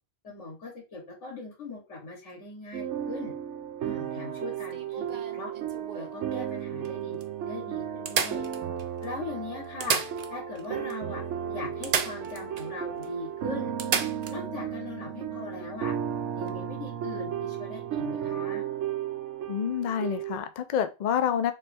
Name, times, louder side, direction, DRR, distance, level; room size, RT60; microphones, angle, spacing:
voice 1, 0.2-3.3 3.8-5.5 5.9-7.2 7.4-8.4 9.0-10.0 10.3-11.2 11.5-13.7 14.3-15.9 16.3-18.6, left 3 dB, 80° left, 1.7 m, -40 dB
sound 1, 2.7-20.4, right 9 dB, 90° right, 1.0 m, -34 dB
sound 2, 4.5-6.2 6.8-6.9 7.2-7.3 8.1-9.1 9.6-10.7 10.9-11.0 11.8-12.7 13.0-13.1 13.8-14.4 16.3-16.5, right 7 dB, 55° right, 0.4 m, -31 dB
voice 2, 19.5-21.5, left 8 dB, 55° left, 0.5 m, -28 dB
3.3 x 3.1 x 4.2 m
omnidirectional pair, 1.2 m